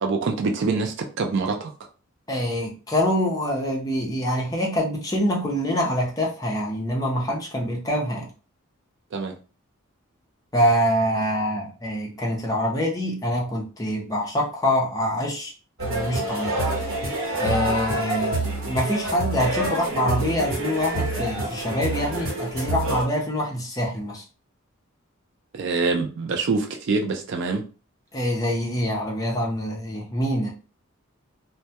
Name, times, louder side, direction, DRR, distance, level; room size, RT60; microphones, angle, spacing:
voice 1, 0.0-1.7 7.7-7.8 9.1-9.4 25.5-27.6, right 4 dB, 60° right, 3 dB, 0.4 m, -25 dB
voice 2, 2.3-8.3 10.5-15.5 15.8-17.0 17.3-18.4 18.7-24.2 28.1-30.5, equal, 15° left, -2 dB, 0.6 m, -25 dB
sound 1, 15.8-23.0, right 1 dB, 75° right, 0.9 m, -27 dB
2.2 x 2.1 x 2.8 m, 0.36 s
head